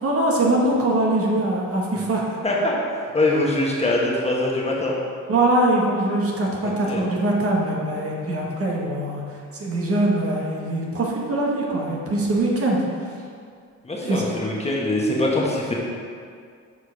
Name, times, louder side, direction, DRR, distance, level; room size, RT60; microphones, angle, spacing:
voice 1, 0.0-2.2 5.3-9.2 9.5-12.8 14.0-14.2, right 1 dB, 50° right, -2 dB, 1.5 m, -22 dB
voice 2, 2.4-2.8 3.1-5.0 6.6-7.0 13.8-15.7, left 2 dB, 20° left, -4 dB, 1.4 m, -23 dB
6.9 x 4.8 x 4.8 m, 2.2 s
cardioid pair, 90°, 30 cm